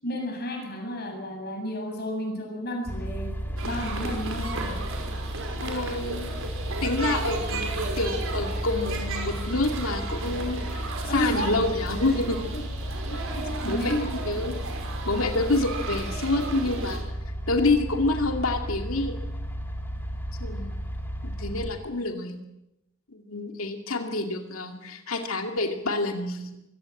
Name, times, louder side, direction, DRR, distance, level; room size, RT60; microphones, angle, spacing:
voice 1, 0.0-4.8 11.0-11.6 12.5-12.6 13.1-14.0, left 1 dB, 50° left, 3 dB, 7.3 m, -32 dB
sound 1, 2.9-21.7, equal, 10° left, 3.1 m, -33 dB
sound 2, 3.6-17.0, right 3 dB, 70° right, 5.5 m, -35 dB
voice 2, 5.6-6.3 6.8-12.5 13.5-13.9 14.3-14.6 15.1-17.1 17.5-19.2 20.4-20.9 21.2-22.4 23.1-26.6, left 2 dB, 75° left, 4 dB, 2.5 m, -28 dB
24.0 x 17.0 x 8.6 m, 0.90 s
head